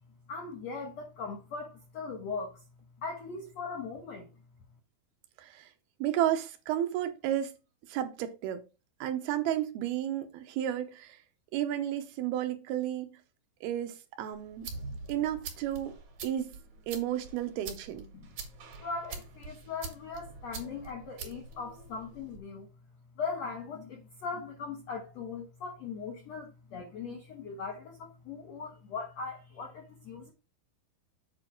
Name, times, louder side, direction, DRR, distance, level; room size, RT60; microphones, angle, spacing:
voice 1, 0.3-2.6 3.0-4.3 18.1-18.3 18.8-22.7 23.2-30.3, left 4 dB, 75° left, 1.6 m, -39 dB
voice 2, 5.4-5.7 6.0-7.5 7.9-8.6 9.0-11.2 11.5-13.1 13.6-14.7 15.1-15.9 16.2-16.6 16.9-18.1, right 11 dB, 75° right, 2.6 m, -32 dB
sound 1, 14.3-22.4, right 4 dB, 55° right, 2.8 m, -45 dB
7.9 x 4.7 x 4.4 m
omnidirectional pair, 4.7 m